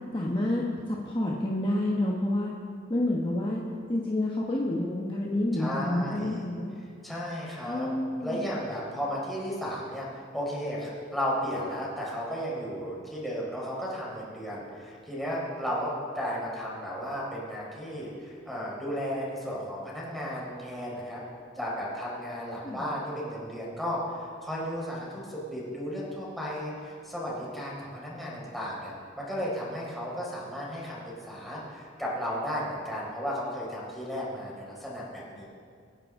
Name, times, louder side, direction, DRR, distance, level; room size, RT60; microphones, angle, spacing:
voice 1, 0.1-2.5 2.9-3.6 3.9-6.7 7.7-8.6 22.6-22.9, left 1 dB, 25° left, -3 dB, 1.2 m, -29 dB
voice 2, 5.5-6.4 7.0-7.9 8.2-21.2 21.6-31.0 31.3-35.4, equal, ahead, -6 dB, 4.3 m, -34 dB
25.5 x 10.5 x 3.8 m, 2.2 s
head